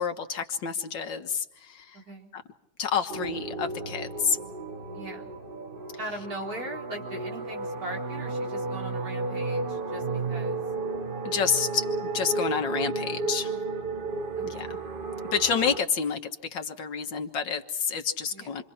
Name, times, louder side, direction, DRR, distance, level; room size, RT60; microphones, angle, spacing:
voice 1, 0.0-2.0 2.3-2.4 2.8-4.4 11.2-13.6 14.4-14.8 15.3-18.6, left 6 dB, 80° left, 6 dB, 2.1 m, -29 dB
voice 2, 1.9-2.3 4.9-5.3 6.0-10.6 13.5-14.1 14.4-14.7 18.3-18.5, right 1 dB, 50° right, -1 dB, 4.5 m, -40 dB
sound 1, 3.1-15.8, right 3 dB, 35° right, 1.1 m, -33 dB
28.0 x 24.5 x 4.4 m, 0.82 s
omnidirectional pair, 2.0 m